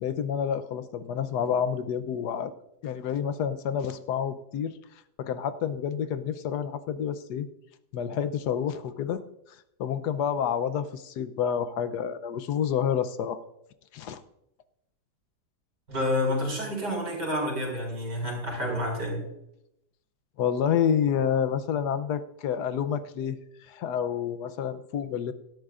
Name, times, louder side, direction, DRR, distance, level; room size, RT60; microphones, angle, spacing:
voice 1, 0.0-2.5 2.8-4.7 5.2-7.5 7.9-9.2 9.8-13.4 13.9-14.2 20.4-23.4 23.7-25.3, left 8 dB, 75° left, 12 dB, 1.3 m, -28 dB
voice 2, 15.9-19.2, left 1 dB, 85° right, -1 dB, 5.3 m, -29 dB
17.0 x 13.0 x 2.5 m, 0.81 s
omnidirectional pair, 1.8 m